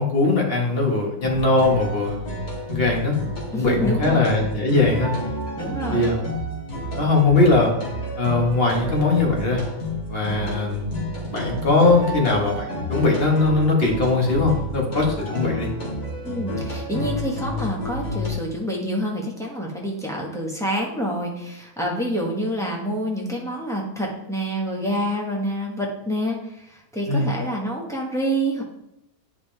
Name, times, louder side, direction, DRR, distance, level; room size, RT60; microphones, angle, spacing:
voice 1, 0.0-2.2 2.7-3.1 3.5-5.1 5.9-6.2 7.0-7.7 8.2-9.6 10.1-10.9 11.3-15.7 27.1-27.3, left 3 dB, 40° left, 0 dB, 1.7 m, -20 dB
sound 1, 1.2-18.3, left 1 dB, 70° left, 2.4 m, -30 dB
voice 2, 3.5-4.3 5.6-6.1 16.2-28.6, equal, ahead, -3 dB, 1.4 m, -27 dB
9.5 x 5.2 x 3.4 m, 0.83 s
omnidirectional pair, 1.6 m